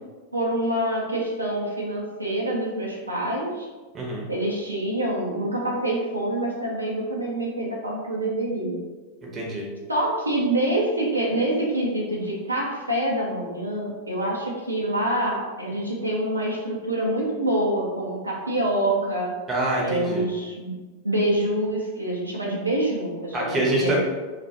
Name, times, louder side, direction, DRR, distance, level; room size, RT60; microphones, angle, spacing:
voice 1, 0.3-3.7 4.3-8.8 9.9-19.3 19.8-20.7 21.0-24.0, right 1 dB, 85° right, -4 dB, 0.5 m, -26 dB
voice 2, 3.9-4.3 9.3-9.7 19.5-20.3 23.3-24.0, right 1 dB, 20° right, -3 dB, 0.7 m, -25 dB
2.3 x 2.1 x 2.8 m, 1.3 s
figure-of-eight pair, 90°, 0 cm